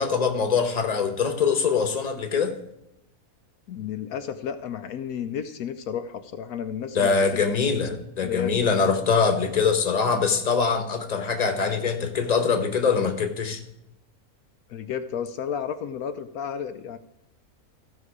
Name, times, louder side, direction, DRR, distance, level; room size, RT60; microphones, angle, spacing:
voice 1, 0.0-2.5 6.9-13.6, left 5 dB, 30° left, 6 dB, 1.2 m, -23 dB
voice 2, 3.7-7.8 8.2-8.7 14.7-17.0, left 8 dB, 75° left, 9 dB, 1.1 m, -32 dB
14.5 x 5.4 x 4.9 m, 0.84 s
omnidirectional pair, 1.5 m